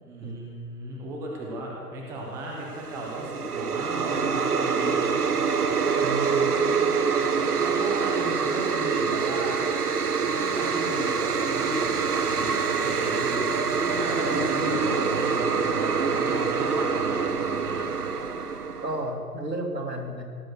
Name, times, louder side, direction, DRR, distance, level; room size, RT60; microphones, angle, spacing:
voice 1, 0.0-5.1 7.6-9.6 10.2-17.8, right 1 dB, 5° right, -2 dB, 0.9 m, -35 dB
sound 1, 2.7-19.1, right 5 dB, 65° right, 1.2 m, -25 dB
voice 2, 6.0-6.7 18.8-20.2, right 1 dB, 90° right, 2 dB, 2.9 m, -32 dB
17.5 x 8.9 x 6.4 m, 2.3 s
figure-of-eight pair, 145°, 48 cm